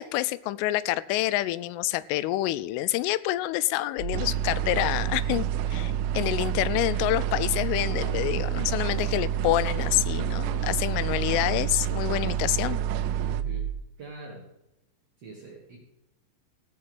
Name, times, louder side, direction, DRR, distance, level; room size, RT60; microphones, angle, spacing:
voice 1, 0.0-12.8, left 16 dB, 85° left, 17 dB, 3.0 m, -27 dB
sound 1, 4.0-13.7, right 9 dB, 65° left, 3.8 m, -29 dB
sound 2, 4.1-13.4, right 15 dB, 85° right, 3.3 m, -34 dB
voice 2, 13.3-13.7 14.0-14.5 15.2-15.8, right 2 dB, 65° right, -3 dB, 1.6 m, -43 dB
16.0 x 5.6 x 7.9 m, 0.90 s
omnidirectional pair, 5.9 m